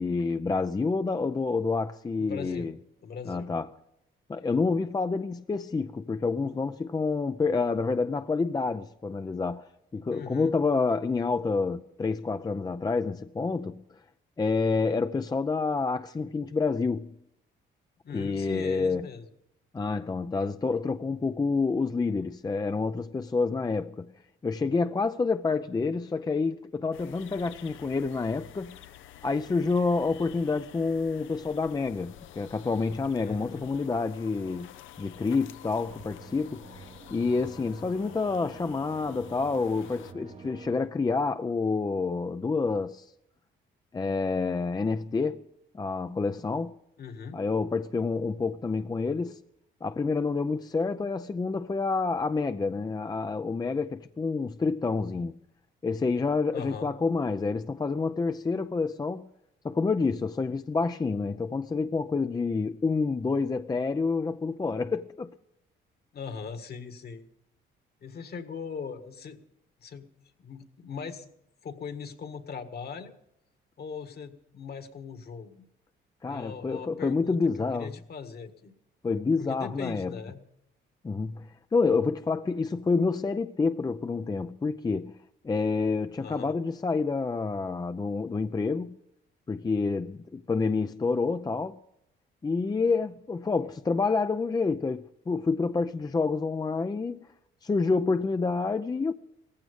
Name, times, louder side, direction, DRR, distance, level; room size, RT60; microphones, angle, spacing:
voice 1, 0.0-2.7 3.3-3.7 4.3-13.8 14.4-17.1 18.1-19.1 19.7-24.1 24.4-28.8 29.2-43.1 43.9-45.4 45.7-46.8 47.3-49.4 49.8-55.4 55.8-59.3 59.6-65.3 76.2-77.9 79.0-80.1 81.0-85.2 85.4-89.0 89.5-91.8 92.4-97.2 97.6-99.1, left 4 dB, 20° left, 0.5 m, -28 dB
voice 2, 2.2-2.7 3.0-3.5 10.1-10.5 18.0-19.3 33.2-33.7 47.0-47.4 56.5-56.9 66.1-67.3 68.0-69.4 69.8-70.1 70.4-71.3 71.6-73.1 73.8-75.6 76.3-77.4 77.7-78.7 79.4-80.4 86.2-86.6, left 6 dB, 50° left, 1.7 m, -40 dB
sound 1, 26.9-40.1, left 12 dB, 80° left, 0.7 m, -49 dB
sound 2, 35.7-40.9, right 5 dB, 30° right, 0.9 m, -49 dB
17.5 x 15.0 x 5.3 m
cardioid pair, 90°, 20 cm